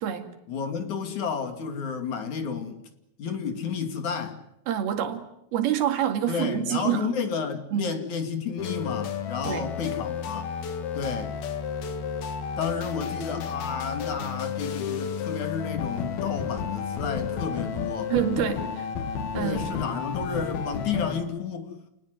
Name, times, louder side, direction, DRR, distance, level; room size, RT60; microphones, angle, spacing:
voice 1, 0.5-2.8 3.2-4.4 6.3-10.5 11.0-11.4 12.6-18.1 19.4-21.8, left 6 dB, 55° left, 3.7 m, -31 dB
voice 2, 4.7-7.1 7.7-7.9 9.4-9.7 18.1-18.9 19.3-19.7, right 10 dB, 90° right, 4.1 m, -27 dB
sound 1, 8.6-21.2, left 6 dB, 80° left, 3.9 m, -32 dB
29.5 x 19.5 x 9.5 m
omnidirectional pair, 4.3 m